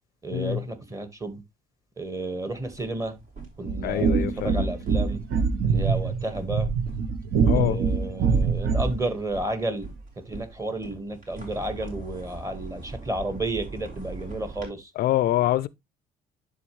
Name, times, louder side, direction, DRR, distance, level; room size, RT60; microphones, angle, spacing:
voice 1, 0.2-1.4 2.0-3.2 3.6-5.2 5.6-6.7 7.5-9.9 10.2-14.9, right 1 dB, 20° right, 1.6 m, -32 dB
sound 1, 2.5-14.7, right 3 dB, 50° right, 4.2 m, -42 dB
sound 2, 3.6-9.0, right 5 dB, 65° right, 1.0 m, -24 dB
voice 2, 3.8-4.7 7.5-7.8 15.0-15.7, left 14 dB, 65° left, 0.4 m, -25 dB
11.0 x 3.9 x 3.1 m
cardioid pair, 110°, 17 cm